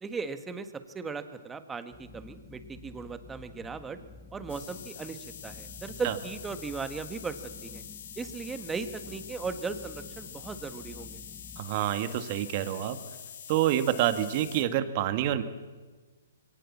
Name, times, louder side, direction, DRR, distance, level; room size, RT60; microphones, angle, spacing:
voice 1, 0.0-4.0 4.3-7.8 8.2-11.2, right 4 dB, 10° right, 10 dB, 1.5 m, -37 dB
sound 1, 1.9-11.6, left 2 dB, 15° left, 2.4 m, -50 dB
sound 2, 4.5-14.6, left 9 dB, 60° left, 2.6 m, -45 dB
voice 2, 11.6-13.0 13.5-15.4, right 12 dB, 40° right, 10 dB, 1.9 m, -27 dB
23.5 x 18.5 x 7.4 m, 1.3 s
hypercardioid pair, 140°, 0 cm